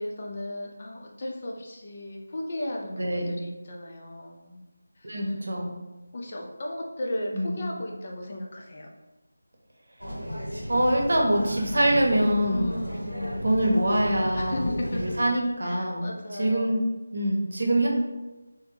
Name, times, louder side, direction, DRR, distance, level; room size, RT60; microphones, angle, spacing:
voice 1, 0.0-4.6 5.0-5.3 6.1-8.9 12.5-13.4 14.3-15.2 15.6-16.8, left 1 dB, 35° left, 0 dB, 0.5 m, -35 dB
voice 2, 3.0-3.4 5.0-5.7 7.3-7.8 10.7-12.7 13.4-16.8 17.1-17.9, right 1 dB, 55° right, 0 dB, 0.8 m, -24 dB
sound 1, 10.0-15.2, equal, 90° right, 0.8 m, -34 dB
3.5 x 3.4 x 2.8 m, 1.1 s
figure-of-eight pair, 165°, 0 cm